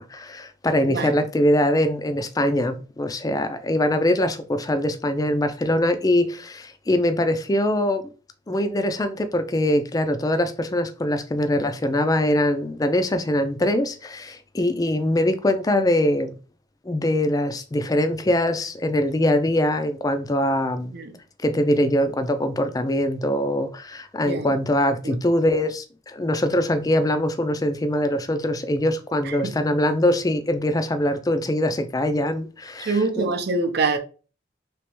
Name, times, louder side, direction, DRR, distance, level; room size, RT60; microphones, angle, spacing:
voice 1, 0.0-8.0 8.5-16.3 16.9-20.9 21.4-33.3, left 1 dB, 20° left, 0.3 m, -23 dB
voice 2, 32.9-34.0, right 3 dB, 55° right, 0.6 m, -24 dB
3.3 x 2.9 x 3.0 m
head